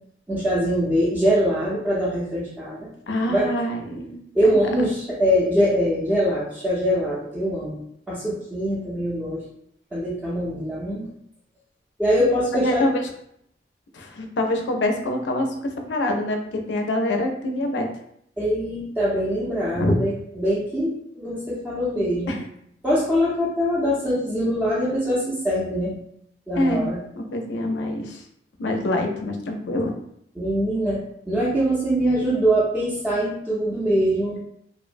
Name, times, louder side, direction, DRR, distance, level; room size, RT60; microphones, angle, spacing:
voice 1, 0.3-2.9 3.3-3.5 4.3-7.8 8.1-9.4 9.9-11.1 12.0-12.9 18.4-22.4 22.8-25.9 26.5-27.0 30.4-31.0 31.3-34.4, equal, 10° right, -10 dB, 0.5 m, -23 dB
voice 2, 3.1-4.6 12.6-13.0 13.9-15.5 15.9-16.4 16.7-17.9 19.7-19.9 22.3-22.4 26.6-28.2 28.6-29.9, left 1 dB, 70° left, 3 dB, 0.4 m, -25 dB
2.8 x 2.0 x 2.5 m, 0.72 s
head